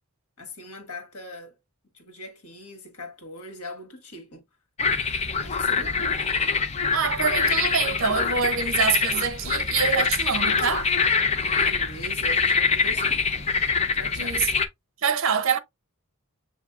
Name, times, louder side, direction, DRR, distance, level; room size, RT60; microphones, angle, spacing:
voice 1, 0.4-1.6 1.9-4.4 5.4-6.2 11.5-13.6 13.9-14.4, left 1 dB, 85° left, 1.6 m, -41 dB
sound 1, 4.8-14.7, left 5 dB, 30° left, 0.5 m, -24 dB
voice 2, 6.9-10.9 14.2-14.5 15.0-15.6, right 6 dB, 65° right, 0.6 m, -25 dB
7.2 x 2.7 x 2.4 m
head